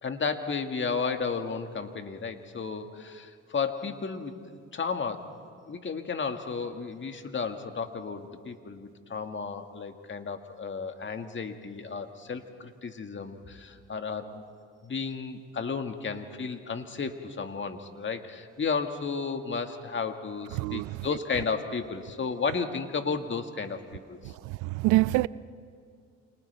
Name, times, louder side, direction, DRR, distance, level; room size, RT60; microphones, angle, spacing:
voice 1, 0.0-5.3 5.7-14.4 14.8-23.8 24.1-24.3, left 5 dB, 40° left, 1.9 m, -33 dB
voice 2, 20.6-21.0 24.6-25.3, right 19 dB, 75° right, 0.5 m, -25 dB
29.0 x 27.0 x 3.4 m
supercardioid pair, 60°, 31 cm